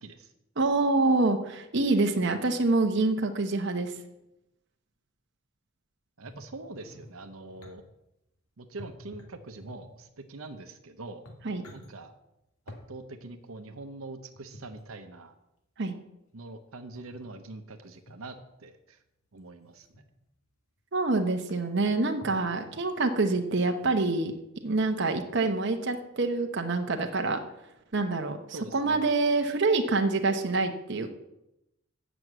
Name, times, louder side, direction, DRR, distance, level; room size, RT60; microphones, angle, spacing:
voice 1, 0.0-0.3 6.2-7.8 8.6-11.2 11.7-12.1 12.9-15.3 16.3-19.0 19.3-19.9 28.5-29.0, right 2 dB, 80° right, 7 dB, 0.8 m, -44 dB
voice 2, 0.6-3.9 11.4-11.6 15.8-16.0 20.9-24.3 24.6-27.4 27.9-28.4 28.7-31.1, right 3 dB, 55° right, 5 dB, 0.9 m, -26 dB
sound 1, 6.2-7.8 8.8-10.1 10.7-10.8 11.1-11.9 12.7-12.9 14.3-14.8 16.9-17.4 18.1-18.4 19.5-20.0 20.8-20.9 21.1-21.2 21.5-21.8 22.2-23.1 23.8-23.9, left 1 dB, 85° left, 1.6 m, -50 dB
7.8 x 6.1 x 7.8 m, 0.88 s
head